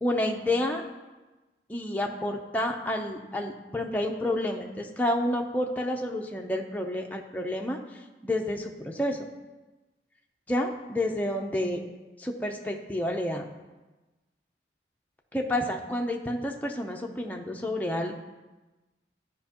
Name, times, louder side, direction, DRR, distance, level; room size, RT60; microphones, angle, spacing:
voice 1, 0.0-0.8 1.7-9.2 10.5-11.8 12.2-13.4 15.3-18.2, left 1 dB, 10° left, 1 dB, 0.6 m, -29 dB
13.0 x 5.2 x 2.9 m, 1.2 s
head